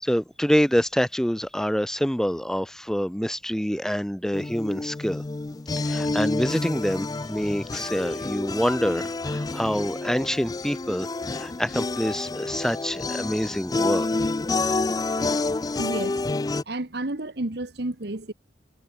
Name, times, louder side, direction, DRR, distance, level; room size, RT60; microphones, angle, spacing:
voice 1, 0.0-5.2 5.8-14.1, equal, 5° left, 0.9 m, -26 dB
sound 1, 4.3-16.6, left 3 dB, 20° left, 0.4 m, -29 dB
voice 2, 15.7-16.2 16.7-18.3, right 2 dB, 60° right, 1.5 m, -31 dB
head